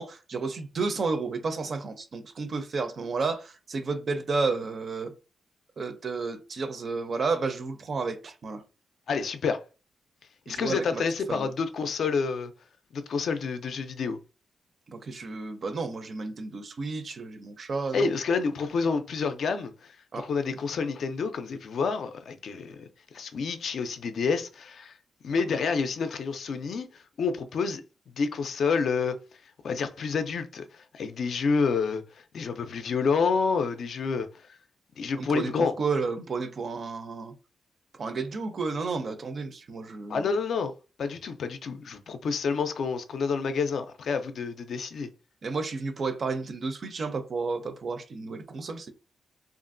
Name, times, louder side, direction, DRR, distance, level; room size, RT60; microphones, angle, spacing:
voice 1, 0.0-5.1 5.8-8.6 10.5-11.0 11.3-11.5 14.9-18.1 20.1-20.3 35.2-37.3 37.9-40.3 45.4-48.9, right 4 dB, 45° right, 0.4 m, -32 dB
voice 2, 9.1-9.6 10.5-12.5 12.9-14.2 17.9-22.9 23.1-25.0 25.2-27.8 28.2-29.2 29.6-32.0 32.3-34.3 35.0-35.7 40.1-40.7 41.0-45.1, left 5 dB, 65° left, 0.4 m, -28 dB
2.9 x 2.4 x 2.5 m
wide cardioid pair, 135°, 0 cm